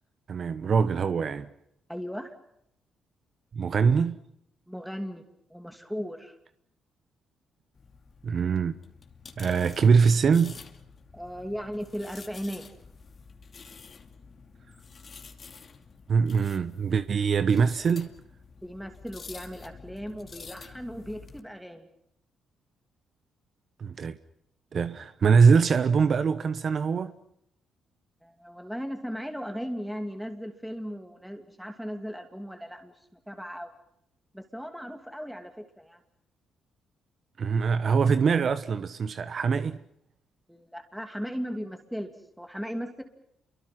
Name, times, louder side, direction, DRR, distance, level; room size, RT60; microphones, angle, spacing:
voice 1, 0.3-1.5 3.5-4.2 8.2-8.7 9.4-10.6 16.1-18.1 23.8-24.2 24.7-27.1 37.4-39.8, right 5 dB, 50° right, 1.1 m, -23 dB
voice 2, 1.9-2.3 4.7-5.2 5.5-6.4 11.1-12.7 18.6-21.9 28.2-33.7 34.3-35.5 35.8-36.0 40.5-43.0, equal, ahead, 2.7 m, -37 dB
sound 1, 7.7-21.4, left 5 dB, 40° left, 2.5 m, -49 dB
28.5 x 24.0 x 6.0 m
cardioid pair, 90°, 0 cm